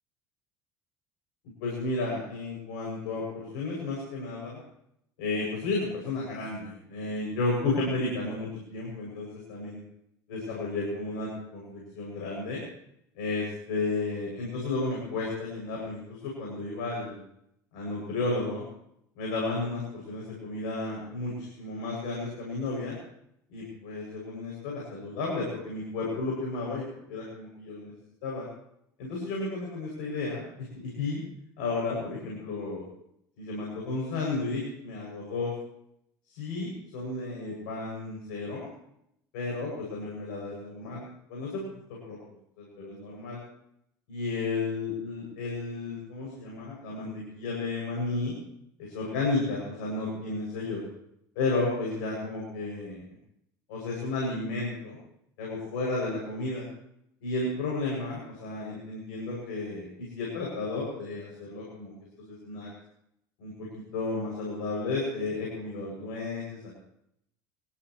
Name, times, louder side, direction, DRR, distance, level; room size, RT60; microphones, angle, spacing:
voice 1, 1.6-4.6 5.2-9.8 10.3-12.6 13.1-17.2 17.7-18.7 19.2-23.0 23.5-27.9 28.2-28.4 29.0-30.4 30.7-31.2 31.6-32.8 33.4-35.5 36.3-38.7 39.3-42.2 42.6-43.4 44.1-48.3 48.8-50.8 51.4-53.0 53.7-55.0 55.4-56.7 57.2-62.7 63.4-66.7, left 3 dB, 80° left, -3 dB, 7.5 m, -33 dB
29.0 x 15.5 x 3.3 m, 0.76 s
supercardioid pair, 85°, 10 cm